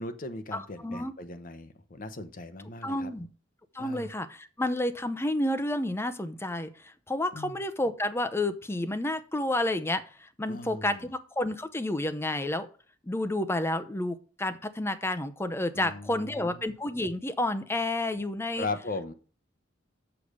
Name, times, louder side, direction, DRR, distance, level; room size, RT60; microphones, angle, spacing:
voice 1, 0.0-3.1 3.8-4.1 7.3-7.6 10.5-11.1 15.7-16.7 18.6-19.1, left 2 dB, 45° left, 10 dB, 0.9 m, -38 dB
voice 2, 0.5-1.1 2.8-3.3 3.7-12.7 13.0-18.7, left 1 dB, 15° left, 10 dB, 0.6 m, -30 dB
7.0 x 5.0 x 6.5 m, 0.39 s
head